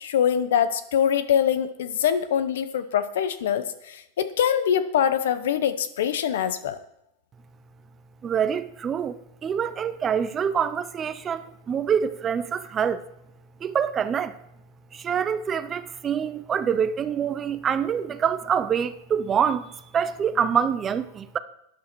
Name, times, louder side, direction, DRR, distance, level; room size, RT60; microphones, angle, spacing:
voice 1, 0.0-6.8, left 9 dB, 80° left, 1.0 m, -24 dB
voice 2, 8.2-13.0 13.6-14.3 14.9-21.4, right 7 dB, 20° right, 0.6 m, -26 dB
12.5 x 9.5 x 4.6 m
supercardioid pair, 145°, 0 cm